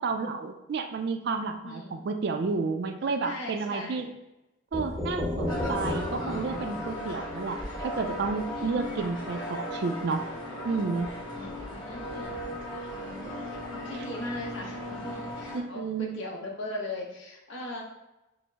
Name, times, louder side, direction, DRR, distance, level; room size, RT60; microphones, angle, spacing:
voice 1, 0.0-4.1 4.7-10.3 10.6-11.1 15.5-16.1, right 4 dB, 55° right, 7 dB, 0.3 m, -31 dB
voice 2, 1.6-2.0 3.2-4.1 8.6-8.9 11.4-12.4 12.9-13.3 13.7-17.8, left 2 dB, 70° left, -1 dB, 0.9 m, -39 dB
sound 1, 4.7-8.5, left 1 dB, ahead, 0.6 m, -34 dB
sound 2, 5.5-15.6, left 1 dB, 20° left, 0.9 m, -37 dB
5.0 x 2.0 x 3.4 m, 0.97 s
head